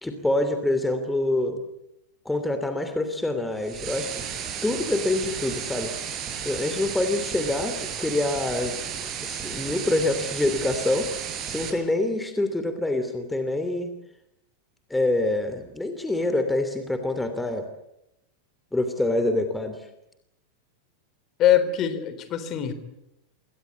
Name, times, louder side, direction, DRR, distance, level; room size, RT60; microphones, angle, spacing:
voice 1, 0.0-1.6 2.2-4.2 4.6-5.9 6.4-13.9 14.9-17.7 18.7-19.8, left 2 dB, 5° left, 8 dB, 2.9 m, -26 dB
sound 1, 3.6-11.7, right 8 dB, 30° right, 7.1 m, -33 dB
voice 2, 21.4-22.7, left 10 dB, 35° left, 11 dB, 3.7 m, -22 dB
27.5 x 22.5 x 8.3 m, 0.84 s
figure-of-eight pair, 90°, 0 cm